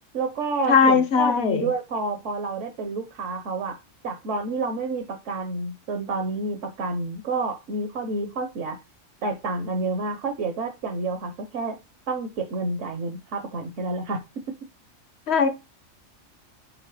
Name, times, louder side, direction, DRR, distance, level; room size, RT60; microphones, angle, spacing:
voice 1, 0.1-3.7 4.0-8.8 9.2-11.8 12.1-14.2, right 3 dB, 65° right, 1.3 m, -29 dB
voice 2, 0.7-1.7 15.3-15.5, left 6 dB, 55° left, 1.1 m, -19 dB
5.7 x 4.3 x 4.9 m
omnidirectional pair, 1.4 m